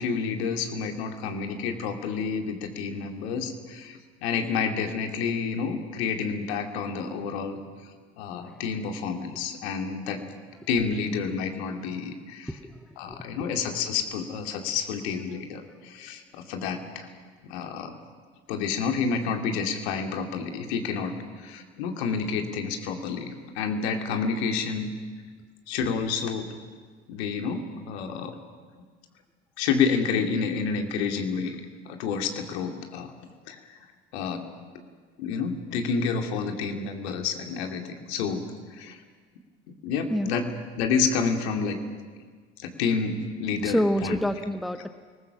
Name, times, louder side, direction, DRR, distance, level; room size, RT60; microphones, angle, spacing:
voice 1, 0.0-7.6 8.2-10.2 10.7-12.5 13.0-17.1 17.4-17.9 18.5-21.1 21.4-24.9 25.7-26.5 27.1-28.4 29.6-31.6 31.8-33.1 33.5-33.6 34.1-34.4 35.2-38.4 38.7-39.0 39.8-40.5 40.8-41.8 42.6-44.2, left 5 dB, 65° left, 4 dB, 2.5 m, -29 dB
voice 2, 12.5-13.2 40.1-40.3 43.6-44.9, equal, ahead, 10 dB, 1.1 m, -28 dB
29.0 x 20.0 x 6.2 m, 1.5 s
figure-of-eight pair, 60°, 34 cm